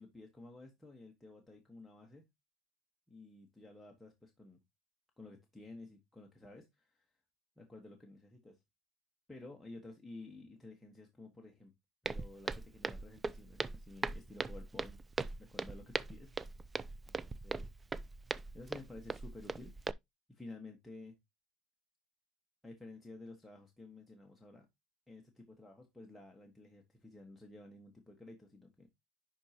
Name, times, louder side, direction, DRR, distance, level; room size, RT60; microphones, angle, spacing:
voice 1, 0.0-2.2 3.1-4.6 5.2-7.1 7.6-8.6 9.3-11.7 12.0-15.0 15.4-16.6 17.4-17.7 18.5-19.7 20.3-21.1 22.6-24.7 25.1-28.9, left 2 dB, 5° left, 1.3 m, -53 dB
Walk footsteps, 12.0-19.9, right 3 dB, 15° right, 0.3 m, -40 dB
10.5 x 4.6 x 2.9 m
cardioid pair, 145°, 0 cm